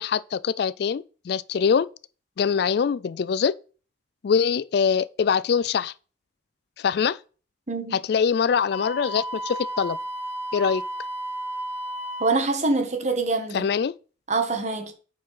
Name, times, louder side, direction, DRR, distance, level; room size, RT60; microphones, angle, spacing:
voice 1, 0.0-1.9 2.4-3.5 4.2-5.9 6.8-7.2 7.9-10.0 10.5-10.8 13.5-13.9, left 6 dB, 60° left, 0.3 m, -23 dB
Wind instrument woodwind instrument, 8.7-12.4, right 1 dB, 35° left, 1.6 m, -33 dB
voice 2, 12.2-13.7 14.3-14.9, right 3 dB, 40° right, 1.4 m, -25 dB
9.1 x 4.5 x 4.8 m
head